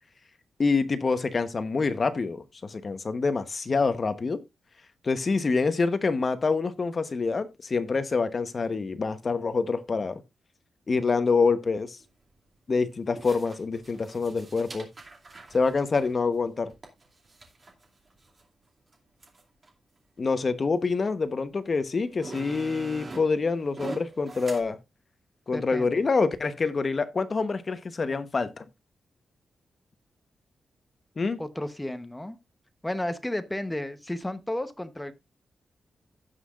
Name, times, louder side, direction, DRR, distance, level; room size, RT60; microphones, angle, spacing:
voice 1, 0.6-4.4 5.0-10.2 10.9-12.0 12.7-14.9 15.5-16.7 20.2-24.8 25.5-28.6 31.2-31.4, left 4 dB, 40° left, 1.0 m, -26 dB
sound 1, 12.0-12.1 13.2-18.4 18.9-19.0 19.2-19.7 20.5-20.6 21.5-21.6 21.9-24.6, right 2 dB, 35° right, 2.6 m, -43 dB
voice 2, 25.5-26.0 31.4-32.4 32.8-35.1, left 1 dB, 10° left, 0.9 m, -33 dB
16.5 x 5.7 x 2.4 m
wide cardioid pair, 120°, 0 cm